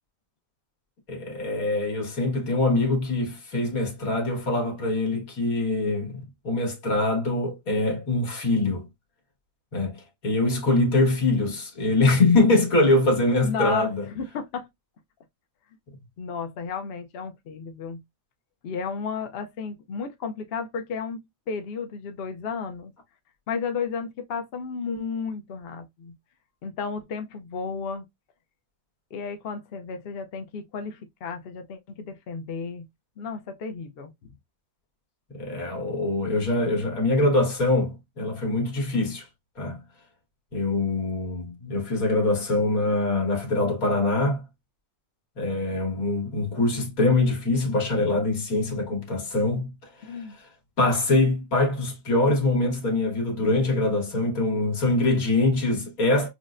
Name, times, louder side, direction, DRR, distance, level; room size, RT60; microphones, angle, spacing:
voice 1, 1.1-8.9 9.7-10.0 10.2-14.0 35.3-39.3 39.6-39.8 40.5-44.4 45.4-49.7 50.0-50.2 50.8-56.3, left 2 dB, 85° left, 1.9 m, -23 dB
voice 2, 13.4-14.7 16.2-18.0 18.6-22.9 23.5-26.1 26.6-28.0 29.1-32.9 33.2-34.3 50.0-50.4, left 5 dB, 55° left, 0.7 m, -33 dB
6.2 x 2.1 x 2.5 m
omnidirectional pair, 1.4 m